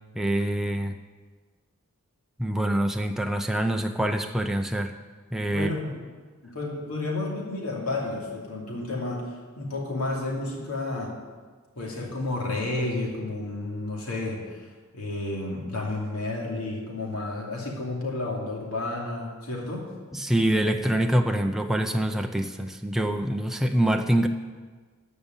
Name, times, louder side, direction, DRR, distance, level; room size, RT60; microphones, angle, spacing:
voice 1, 0.2-1.0 2.4-4.9 5.3-5.7 20.1-24.3, right 1 dB, ahead, 4 dB, 0.5 m, -25 dB
voice 2, 5.5-6.0 6.4-11.1 11.8-14.7 14.9-19.9, left 2 dB, 75° left, -2 dB, 2.7 m, -31 dB
14.5 x 5.4 x 8.9 m, 1.4 s
head